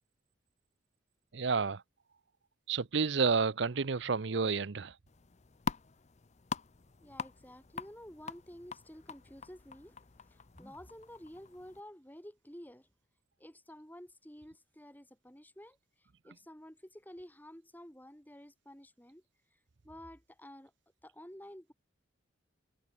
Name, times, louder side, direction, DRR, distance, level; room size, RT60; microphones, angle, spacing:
voice 1, 1.3-1.8 2.7-4.9, right 5 dB, 60° right, 0.7 m, -30 dB
sound 1, 5.1-11.8, left 5 dB, 35° left, 0.6 m, -44 dB
voice 2, 7.0-10.0 10.3-12.9 13.4-15.8 16.2-19.2 19.8-20.7 21.0-21.7, equal, 10° left, 5.4 m, -51 dB
head